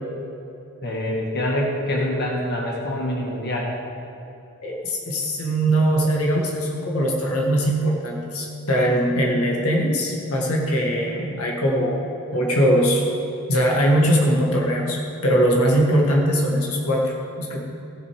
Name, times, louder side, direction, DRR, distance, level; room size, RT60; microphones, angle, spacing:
voice 1, 0.8-3.7, left 1 dB, 45° left, -2 dB, 1.7 m, -25 dB
voice 2, 4.6-13.1 13.5-17.6, equal, 80° left, -1 dB, 1.9 m, -21 dB
16.5 x 6.7 x 5.0 m, 2.9 s
head